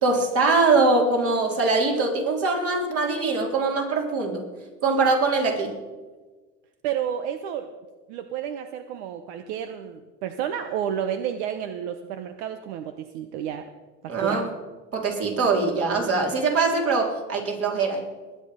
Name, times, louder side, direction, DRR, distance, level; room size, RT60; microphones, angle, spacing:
voice 1, 0.0-4.4 4.8-5.8 14.1-14.5 14.9-18.0, right 3 dB, 45° right, 1 dB, 3.9 m, -22 dB
voice 2, 6.8-7.7 8.1-13.6 14.0-14.4, right 9 dB, 75° right, 9 dB, 1.0 m, -31 dB
20.5 x 9.0 x 5.2 m, 1.3 s
supercardioid pair, 100°, 34 cm